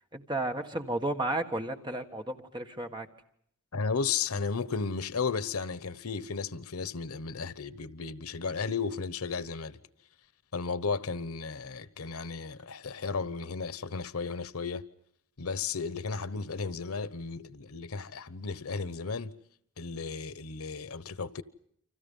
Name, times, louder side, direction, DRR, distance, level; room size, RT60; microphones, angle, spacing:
voice 1, 0.1-3.1, right 2 dB, 20° right, 1.7 m, -33 dB
voice 2, 3.7-9.8 10.5-14.8 15.4-19.4 19.8-21.4, left 5 dB, 90° left, 1.0 m, -34 dB
30.0 x 25.5 x 5.5 m
head